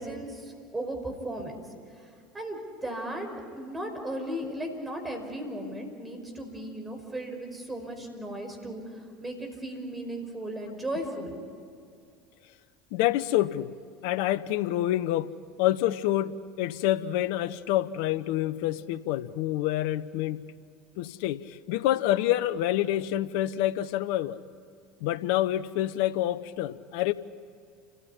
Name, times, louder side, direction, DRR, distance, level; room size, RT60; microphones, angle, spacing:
voice 1, 0.0-1.6 2.0-2.1 2.3-3.3 3.5-11.4, right 1 dB, 15° right, 3 dB, 5.3 m, -36 dB
voice 2, 12.9-13.8 14.0-15.3 15.6-20.5 21.0-24.4 25.0-27.1, left 14 dB, 65° left, 16 dB, 0.8 m, -27 dB
29.5 x 15.0 x 9.9 m, 2.3 s
hypercardioid pair, 80°, 0 cm